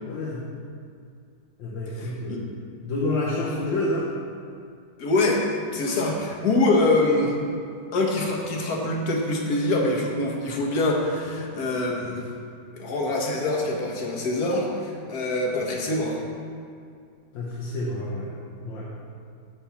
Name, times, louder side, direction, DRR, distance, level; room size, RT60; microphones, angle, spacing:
voice 1, 0.1-0.4 1.6-2.5 2.8-4.1 17.3-18.3 18.6-18.9, left 2 dB, 70° left, -5 dB, 1.7 m, -28 dB
voice 2, 1.9-2.4 5.0-7.4 7.9-12.3 12.7-16.2, left 2 dB, 55° left, -1 dB, 1.5 m, -24 dB
10.0 x 3.5 x 7.0 m, 2.3 s
omnidirectional pair, 2.2 m